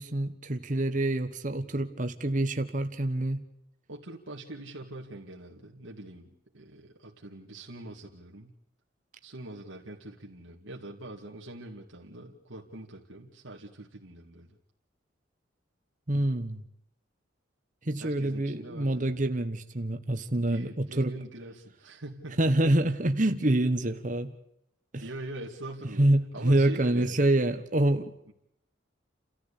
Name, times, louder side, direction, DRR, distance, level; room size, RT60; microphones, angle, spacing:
voice 1, 0.0-3.4 16.1-16.6 17.8-21.1 22.4-24.3 24.9-25.0 26.0-28.1, right 1 dB, 40° right, 7 dB, 1.3 m, -26 dB
voice 2, 3.9-8.5 9.2-14.6 18.0-19.2 20.3-22.6 25.0-26.1 26.3-27.3, right 1 dB, 85° right, 0 dB, 2.2 m, -43 dB
29.5 x 14.0 x 8.5 m, 0.81 s
head